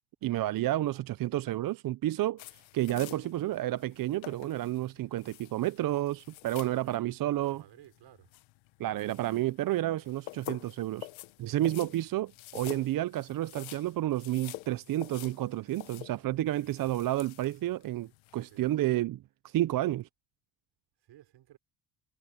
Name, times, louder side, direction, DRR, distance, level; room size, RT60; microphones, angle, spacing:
voice 1, 0.2-7.6 8.8-11.1 11.4-20.1, right 14 dB, 50° right, 0.5 m, -31 dB
voice 2, 0.7-1.2 6.7-8.3 16.6-17.0 18.0-18.1 18.5-18.8 21.0-21.6, right 13 dB, 70° right, 5.3 m, -57 dB
sound 1, 2.4-18.7, left 18 dB, 90° left, 1.0 m, -48 dB
cardioid pair, 120°, 45 cm